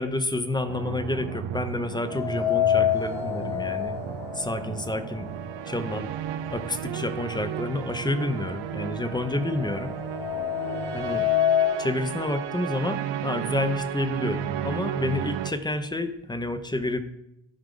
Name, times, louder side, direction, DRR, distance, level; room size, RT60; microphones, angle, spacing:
voice 1, 0.0-4.0 4.3-5.3 5.7-6.1 6.5-10.0 10.9-11.3 11.8-17.0, left 2 dB, 10° left, 10 dB, 0.5 m, -29 dB
sound 1, 0.7-15.5, right 10 dB, 70° right, 0.7 m, -34 dB
sound 2, 2.1-6.1 6.5-6.6 7.6-7.7 8.0-11.9, left 10 dB, 70° left, 1.3 m, -28 dB
12.5 x 4.9 x 3.8 m, 0.87 s
cardioid pair, 120°, 46 cm